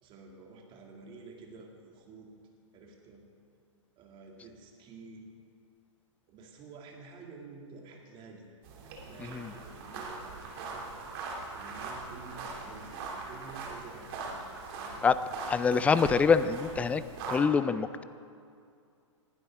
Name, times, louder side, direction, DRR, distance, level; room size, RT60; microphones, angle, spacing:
voice 1, 0.0-2.3 2.7-3.2 4.0-5.3 6.3-8.5 8.8-10.9 11.5-14.4 14.7-15.0, right 4 dB, 30° right, 1 dB, 2.4 m, -50 dB
sound 1, 8.6-17.4, right 4 dB, 50° right, 2.7 m, -41 dB
voice 2, 15.5-17.0 17.3-18.0, left 5 dB, 10° left, 14 dB, 0.3 m, -25 dB
19.5 x 12.0 x 3.6 m, 2.4 s
hypercardioid pair, 115°, 16 cm